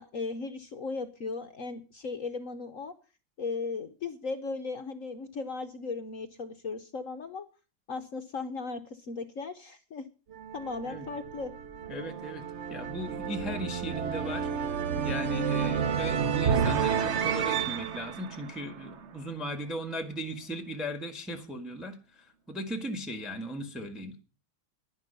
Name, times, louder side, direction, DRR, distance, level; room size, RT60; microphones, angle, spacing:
voice 1, 0.0-2.9 3.4-7.5 7.9-10.0 10.5-11.5, left 4 dB, 55° left, 7 dB, 0.9 m, -37 dB
sound 1, 10.3-19.3, right 7 dB, 55° right, 0.8 m, -31 dB
voice 2, 11.9-12.4 12.7-22.0 22.5-24.1, equal, ahead, 8 dB, 1.3 m, -37 dB
11.0 x 11.0 x 6.7 m, 0.35 s
omnidirectional pair, 2.3 m